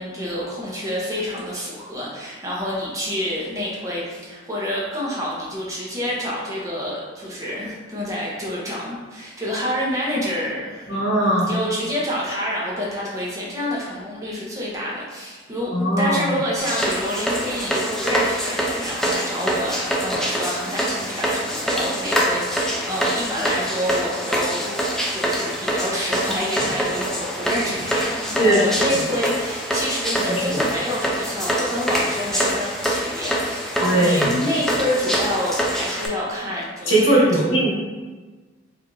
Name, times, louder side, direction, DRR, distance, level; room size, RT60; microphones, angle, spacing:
voice 1, 0.0-11.1 11.5-24.8 25.1-37.4, equal, 15° right, -5 dB, 0.7 m, -28 dB
voice 2, 10.9-11.5 15.7-16.3 28.4-28.6 30.3-30.6 33.8-34.3 36.9-37.7, right 1 dB, 85° left, -5 dB, 1.2 m, -19 dB
sound 1, 16.6-36.1, equal, ahead, 0.4 m, -25 dB
4.6 x 2.6 x 2.6 m, 1.3 s
head